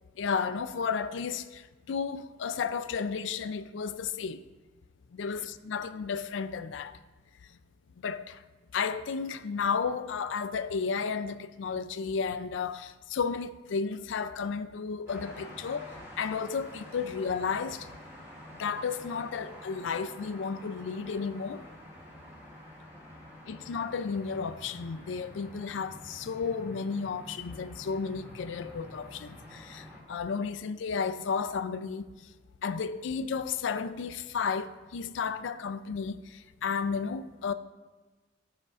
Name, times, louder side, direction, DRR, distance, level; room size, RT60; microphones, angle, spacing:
voice 1, 0.2-4.4 5.1-7.0 8.0-8.4 8.7-17.9 18.5-21.6 23.5-32.1 32.6-37.5, left 5 dB, 80° left, 0.4 m, -33 dB
sound 1, 15.1-30.0, equal, 15° right, 1.7 m, -48 dB
13.5 x 5.2 x 2.5 m
head